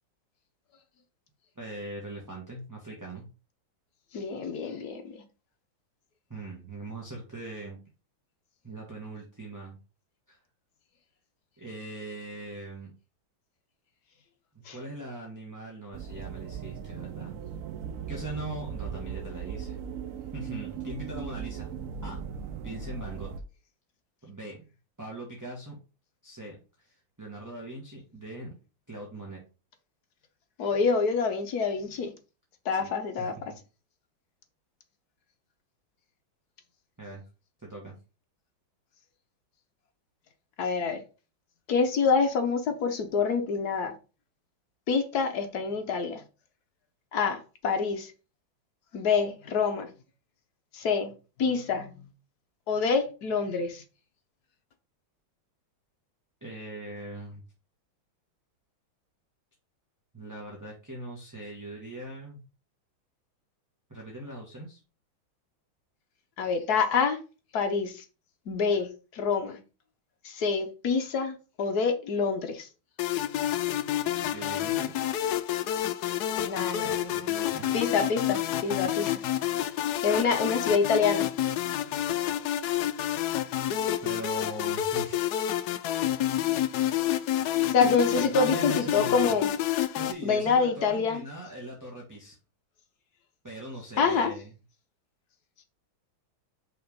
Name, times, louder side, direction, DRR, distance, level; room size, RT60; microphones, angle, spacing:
voice 1, 1.6-3.3 6.3-7.8 8.6-9.8 10.3-10.4 11.6-12.9 14.5-17.3 18.1-19.8 20.3-21.7 22.0-22.2 22.6-23.3 24.2-24.6 25.0-25.8 26.2-28.5 28.9-29.4 32.7-32.9 33.2-33.6 37.0-37.2 37.6-37.9 56.4-57.4 60.1-62.4 63.9-64.8 74.1-75.1 76.6-77.7 84.0-85.3 88.1-89.4 89.9-92.3 93.4-94.5, right 2 dB, 10° right, 1.2 m, -41 dB
voice 2, 4.1-5.2 14.7-14.8 30.6-32.1 32.6-33.3 40.6-41.0 41.7-43.9 44.9-46.2 47.1-48.1 48.9-49.9 50.7-51.1 51.4-52.0 52.7-53.8 66.4-67.2 67.5-68.0 68.5-69.6 70.2-72.7 76.5-77.3 77.7-79.1 80.0-81.3 87.7-89.5 90.2-91.2 94.0-94.3, left 5 dB, 55° left, 1.4 m, -26 dB
sound 1, 15.9-23.4, right 8 dB, 80° right, 0.7 m, -38 dB
sound 2, 73.0-90.1, left 12 dB, 75° left, 0.9 m, -29 dB
5.6 x 3.6 x 5.3 m
omnidirectional pair, 2.2 m